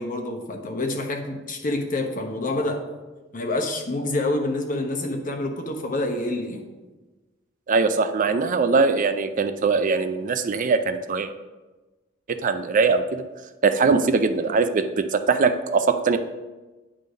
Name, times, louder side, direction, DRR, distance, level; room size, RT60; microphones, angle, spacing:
voice 1, 0.0-2.8 3.3-6.6, left 2 dB, 45° left, 3 dB, 1.0 m, -27 dB
voice 2, 7.7-11.3 12.3-13.2 13.6-16.2, right 4 dB, 40° right, 9 dB, 0.4 m, -21 dB
9.6 x 3.8 x 5.1 m, 1.2 s
head